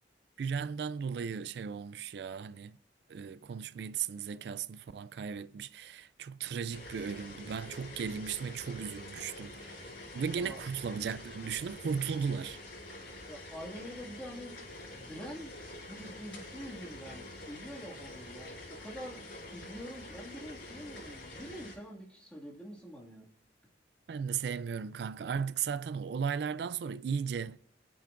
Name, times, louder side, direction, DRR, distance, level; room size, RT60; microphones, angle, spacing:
voice 1, 0.4-2.8 3.1-12.6 24.1-27.6, right 6 dB, 65° right, 0.3 m, -36 dB
sound 1, 6.7-21.7, left 2 dB, 80° left, 5.2 m, -47 dB
voice 2, 13.3-14.6 14.9-15.5 15.9-19.2 19.5-23.3, equal, 5° left, 2.0 m, -46 dB
23.0 x 8.6 x 2.5 m
head